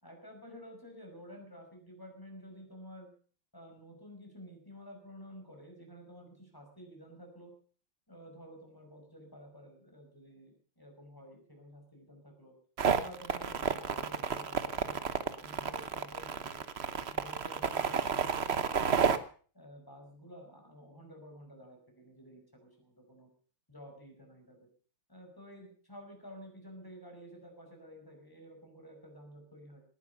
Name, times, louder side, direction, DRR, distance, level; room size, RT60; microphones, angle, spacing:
voice 1, 0.0-3.1 3.5-7.5 8.1-12.5 13.0-16.6 17.1-19.2 19.5-23.3 23.7-24.7 25.1-29.8, equal, 10° left, 2 dB, 5.4 m, -51 dB
sound 1, 12.8-19.2, right 6 dB, 45° right, 0.9 m, -31 dB
18.5 x 11.0 x 6.8 m, 0.43 s
omnidirectional pair, 2.2 m